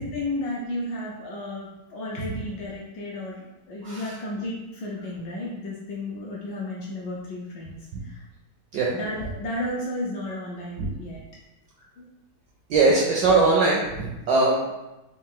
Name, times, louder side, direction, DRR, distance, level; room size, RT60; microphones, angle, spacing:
voice 1, 0.0-8.3 8.9-11.2 12.0-12.1, left 1 dB, 75° left, -3 dB, 1.0 m, -33 dB
voice 2, 3.8-4.1 8.7-8.9 10.8-10.9 12.7-14.6, right 3 dB, 80° right, -2 dB, 1.0 m, -21 dB
4.0 x 2.3 x 3.6 m, 1.0 s
omnidirectional pair, 2.4 m